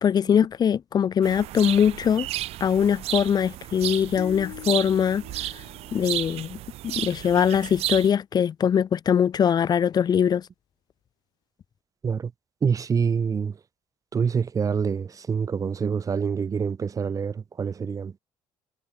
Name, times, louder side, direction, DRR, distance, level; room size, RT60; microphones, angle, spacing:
voice 1, 0.0-2.3 2.6-5.2 5.9-10.4, left 8 dB, 40° left, 0.5 m, -22 dB
sound 1, 1.2-8.1, right 15 dB, 70° right, 1.1 m, -33 dB
sound 2, 4.2-6.6, left 23 dB, 85° left, 1.6 m, -42 dB
voice 2, 12.6-13.6 14.1-18.2, right 6 dB, 30° right, 0.6 m, -26 dB
supercardioid pair, 85°, 11 cm